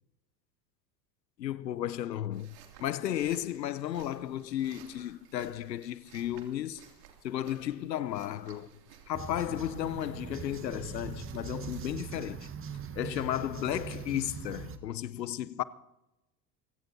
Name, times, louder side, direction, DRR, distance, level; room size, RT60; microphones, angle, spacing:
voice 1, 1.4-2.5 2.8-6.8 7.2-8.7 9.1-12.5 12.9-15.6, left 12 dB, 85° left, 0.8 m, -34 dB
sound 1, 2.3-11.9, right 8 dB, 70° right, 2.7 m, -57 dB
sound 2, 9.1-14.8, right 7 dB, 25° right, 1.2 m, -41 dB
27.0 x 16.5 x 2.7 m
hypercardioid pair, 80°, 49 cm